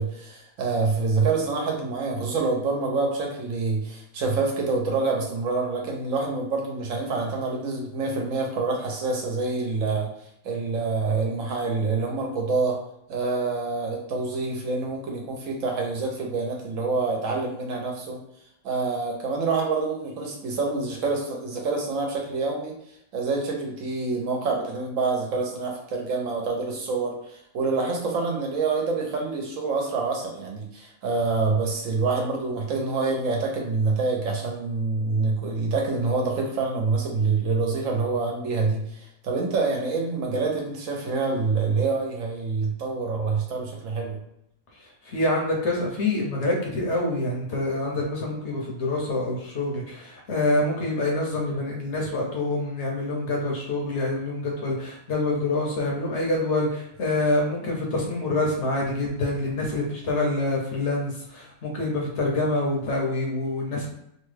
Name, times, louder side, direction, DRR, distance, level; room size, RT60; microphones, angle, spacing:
voice 1, 0.0-10.1 10.4-12.8 13.1-18.2 18.6-22.7 23.1-44.2, right 4 dB, 70° right, 0 dB, 1.0 m, -26 dB
voice 2, 45.0-63.9, left 2 dB, 60° left, -1 dB, 0.9 m, -26 dB
2.9 x 2.2 x 3.2 m, 0.77 s
omnidirectional pair, 1.5 m